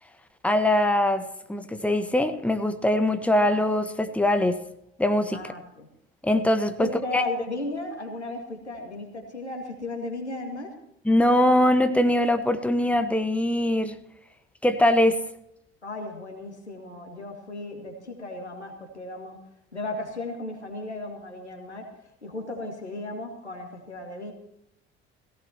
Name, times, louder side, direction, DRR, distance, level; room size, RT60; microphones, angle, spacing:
voice 1, 0.4-1.2 1.5-4.6 5.0-5.4 6.2-6.9 7.1-7.2 11.0-14.0 14.6-15.2, left 1 dB, 5° left, 9 dB, 1.3 m, -22 dB
voice 2, 5.3-5.9 6.8-10.7 15.8-19.4 19.7-21.9 22.2-24.3, left 2 dB, 90° left, 2 dB, 2.3 m, -35 dB
18.5 x 17.5 x 3.0 m, 0.79 s
figure-of-eight pair, 55°, 33 cm